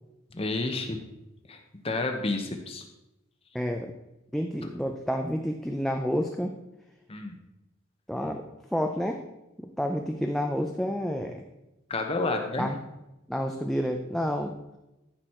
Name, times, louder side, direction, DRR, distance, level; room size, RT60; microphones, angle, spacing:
voice 1, 0.3-1.0 1.5-2.8 7.1-7.3 11.9-12.7, left 2 dB, 30° left, 4 dB, 0.9 m, -30 dB
voice 2, 3.5-3.9 4.3-6.5 8.1-8.4 8.7-9.2 9.8-11.4 12.6-12.8 13.3-14.5, equal, ahead, 3 dB, 0.5 m, -29 dB
14.0 x 6.1 x 4.4 m, 0.95 s
head